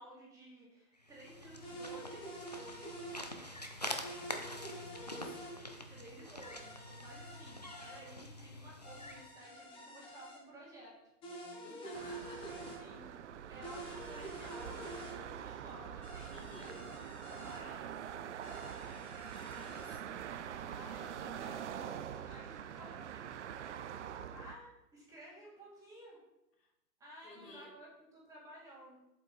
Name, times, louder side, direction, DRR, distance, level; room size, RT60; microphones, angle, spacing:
voice 1, 0.0-2.3 5.9-11.0 11.3-11.6 12.5-13.1 13.5-18.2 20.6-23.4 24.3-26.2 27.0-29.0, right 1 dB, 5° right, -7 dB, 2.4 m, -54 dB
sound 1, 1.0-9.3, left 1 dB, 30° left, 0.3 m, -46 dB
sound 2, 1.6-3.2 4.0-5.6 6.4-8.0 8.8-10.4 11.2-12.8 13.6-15.1 16.0-17.6 18.4-20.0, right 1 dB, 10° left, 1.1 m, -48 dB
voice 2, 4.2-5.5 11.6-12.6 16.3-16.8 19.5-20.4 26.6-26.7 27.2-27.8, left 3 dB, 75° left, -2 dB, 3.7 m, -56 dB
sound 3, 11.9-24.5, right 9 dB, 50° right, 0.6 m, -45 dB
8.1 x 7.6 x 4.0 m, 0.90 s
hypercardioid pair, 160°, 48 cm